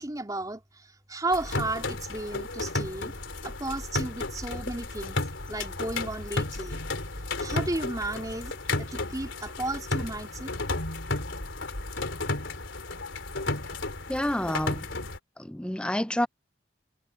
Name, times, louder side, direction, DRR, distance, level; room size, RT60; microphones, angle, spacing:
voice 1, 0.0-3.1 3.4-5.2 5.5-6.8 7.4-10.5, right 2 dB, 20° right, 3.0 m, -34 dB
sound 1, 1.3-15.2, left 2 dB, 85° left, 3.4 m, -33 dB
voice 2, 14.1-14.9 15.4-16.3, left 1 dB, 5° left, 0.5 m, -28 dB
head